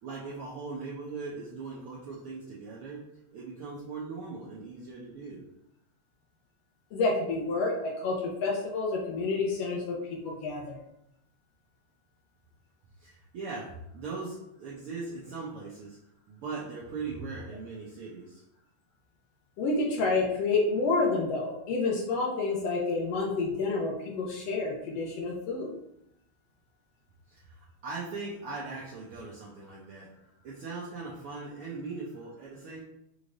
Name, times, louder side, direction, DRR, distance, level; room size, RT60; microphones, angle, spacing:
voice 1, 0.0-3.0 3.3-5.4 13.0-16.0 16.3-18.4 27.3-30.1 30.4-32.8, right 4 dB, 80° right, -5 dB, 1.2 m, -39 dB
voice 2, 6.9-10.8 19.6-25.7, left 3 dB, 70° left, -1 dB, 1.6 m, -29 dB
6.1 x 3.2 x 2.5 m, 0.81 s
omnidirectional pair, 3.3 m